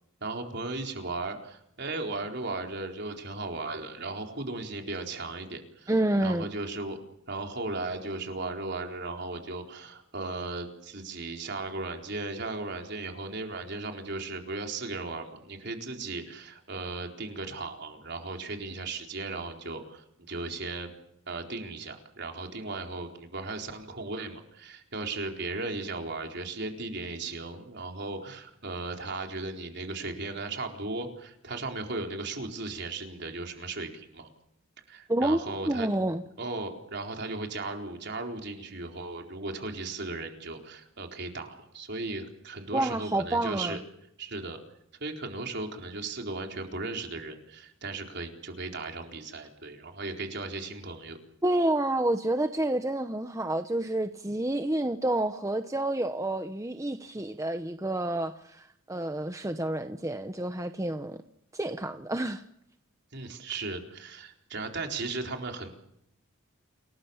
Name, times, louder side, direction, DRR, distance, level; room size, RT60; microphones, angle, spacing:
voice 1, 0.2-5.9 6.2-7.0 7.3-20.9 21.3-34.3 34.9-35.9 36.4-43.8 44.2-44.6 45.0-51.2 63.1-65.7, right 3 dB, 55° right, 4.2 m, -36 dB
voice 2, 5.9-6.5 35.1-36.2 42.7-43.8 51.4-61.2 61.5-62.4, right 1 dB, 15° right, 0.9 m, -29 dB
28.5 x 19.0 x 7.2 m
head